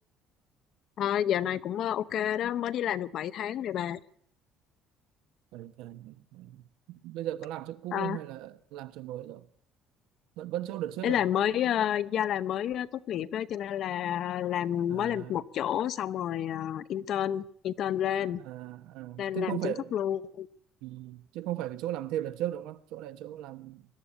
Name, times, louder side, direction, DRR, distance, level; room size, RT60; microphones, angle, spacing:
voice 1, 1.0-4.0 7.9-8.2 11.0-18.4 19.2-20.5, left 10 dB, 45° left, 0.8 m, -30 dB
voice 2, 5.5-9.4 10.4-11.2 11.5-11.6 14.9-15.4 18.4-19.9 20.8-23.9, right 13 dB, 85° right, 1.3 m, -37 dB
21.0 x 13.0 x 10.0 m
cardioid pair, 175°, 0 cm